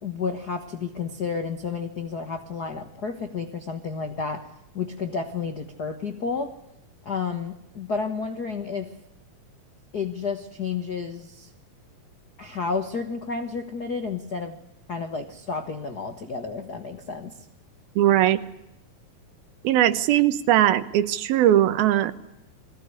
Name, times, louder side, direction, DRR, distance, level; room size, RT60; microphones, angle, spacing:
voice 1, 0.0-4.5 4.7-6.5 7.0-8.9 9.9-11.5 12.4-14.6 14.9-17.3, left 5 dB, 85° left, 6 dB, 0.8 m, -31 dB
voice 2, 18.0-18.4 19.6-22.1, right 12 dB, 80° right, 13 dB, 2.9 m, -20 dB
21.5 x 17.0 x 9.7 m, 0.88 s
omnidirectional pair, 4.2 m